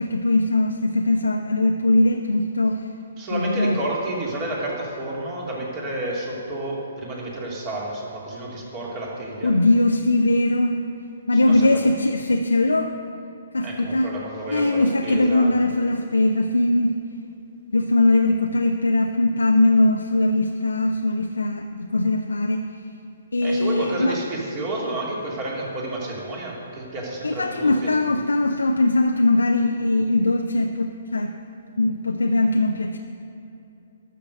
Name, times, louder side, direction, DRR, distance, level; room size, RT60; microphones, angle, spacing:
voice 1, 0.0-2.8 3.3-3.8 9.4-10.8 11.3-12.9 13.5-14.1 14.5-17.0 17.7-22.6 23.3-24.2 27.2-31.3 31.8-33.0, left 2 dB, 80° left, 4 dB, 0.5 m, -20 dB
voice 2, 3.2-9.5 11.4-11.7 13.6-15.5 23.4-27.9, right 1 dB, 30° right, -3 dB, 2.7 m, -30 dB
12.5 x 6.8 x 6.4 m, 2.8 s
figure-of-eight pair, 130°, 0 cm